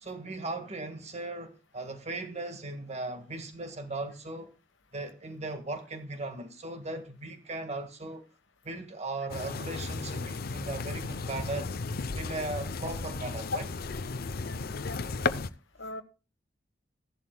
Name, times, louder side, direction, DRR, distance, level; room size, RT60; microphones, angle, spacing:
voice 1, 0.0-4.5 4.9-8.2 8.6-11.7 12.1-13.7, right 2 dB, 35° right, 1.6 m, -38 dB
sound 1, 9.3-15.5, left 4 dB, 55° left, 0.6 m, -34 dB
voice 2, 14.4-15.0 15.8-16.0, left 2 dB, 90° left, 1.2 m, -42 dB
15.5 x 11.0 x 2.2 m
head